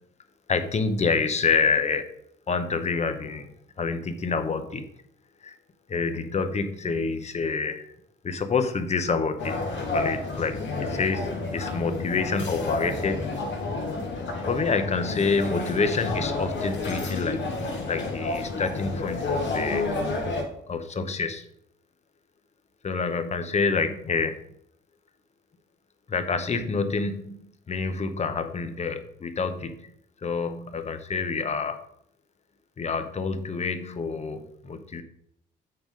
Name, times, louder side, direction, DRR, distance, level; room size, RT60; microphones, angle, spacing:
voice 1, 0.5-2.1 2.5-3.5 3.8-4.9 5.4-5.6 5.9-7.9 8.2-9.6 9.9-13.3 14.5-17.5 17.9-19.9 20.7-21.4 22.8-24.3 26.1-29.9 30.2-31.8 32.8-35.0, left 4 dB, 35° left, 9 dB, 0.9 m, -27 dB
sound 1, 9.4-20.4, left 3 dB, 65° left, 1.9 m, -30 dB
7.9 x 3.7 x 5.1 m, 0.72 s
cardioid pair, 90°, 20 cm